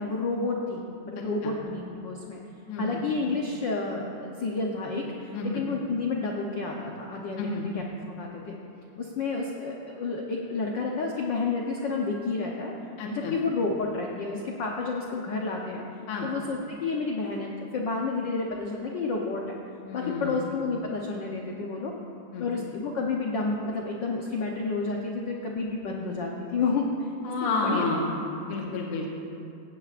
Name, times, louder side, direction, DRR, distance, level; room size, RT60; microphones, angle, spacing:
voice 1, 0.0-2.4 2.8-8.5 9.0-12.7 13.1-15.8 16.2-19.4 19.9-21.9 22.4-27.1 27.4-27.9 28.5-28.8, left 3 dB, 75° left, -1 dB, 1.0 m, -30 dB
voice 2, 2.7-3.0 5.3-5.6 7.4-7.7 13.0-13.3 16.1-16.3 19.9-20.4 22.3-22.4 27.2-29.1, left 3 dB, 55° left, -2 dB, 2.0 m, -30 dB
17.0 x 16.0 x 2.5 m, 2.6 s
omnidirectional pair, 3.3 m